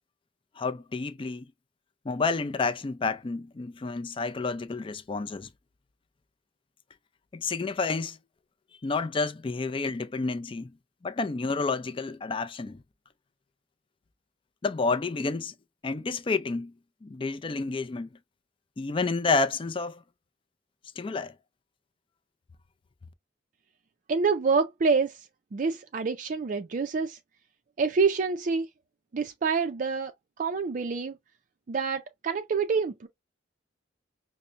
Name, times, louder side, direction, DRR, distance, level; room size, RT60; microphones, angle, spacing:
voice 1, 0.6-1.5 2.0-5.5 7.3-8.2 8.8-10.7 11.0-12.8 14.6-15.5 15.8-16.7 17.0-18.1 18.8-20.0 21.0-21.3, left 4 dB, 30° left, 0.4 m, -30 dB
voice 2, 24.1-25.3 25.5-27.2 27.8-28.7 29.1-30.1 30.4-31.1 31.7-33.1, right 5 dB, 45° right, 0.4 m, -27 dB
5.5 x 2.1 x 2.4 m
head